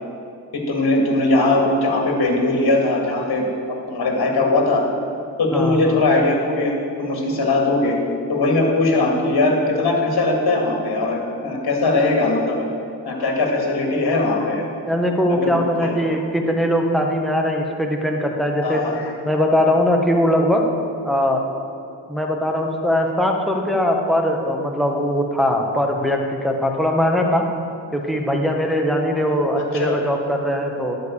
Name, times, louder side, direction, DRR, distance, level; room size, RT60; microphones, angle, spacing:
voice 1, 0.5-3.5 3.9-4.8 5.4-8.0 8.3-12.7 13.1-14.7 15.3-15.9 18.6-19.1 29.6-30.0, left 2 dB, 55° left, 1 dB, 2.2 m, -20 dB
voice 2, 5.5-5.9 14.9-18.8 19.2-20.6 21.0-21.4 22.1-27.4 27.9-30.9, equal, ahead, 1 dB, 1.6 m, -20 dB
11.0 x 5.2 x 7.2 m, 2.6 s
cardioid pair, 55°, 45 cm